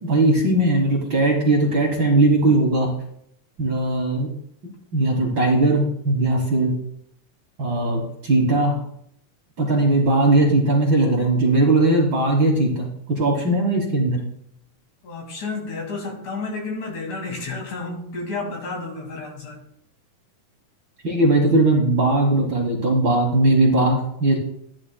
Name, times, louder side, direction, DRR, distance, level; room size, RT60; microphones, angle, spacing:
voice 1, 0.0-2.9 3.6-4.3 4.9-6.7 7.6-8.8 9.6-14.2 21.0-24.4, right 2 dB, 45° right, -1 dB, 1.7 m, -19 dB
voice 2, 15.0-19.6, left 3 dB, 65° left, 0 dB, 3.6 m, -31 dB
13.5 x 10.0 x 2.2 m, 0.71 s
omnidirectional pair, 3.6 m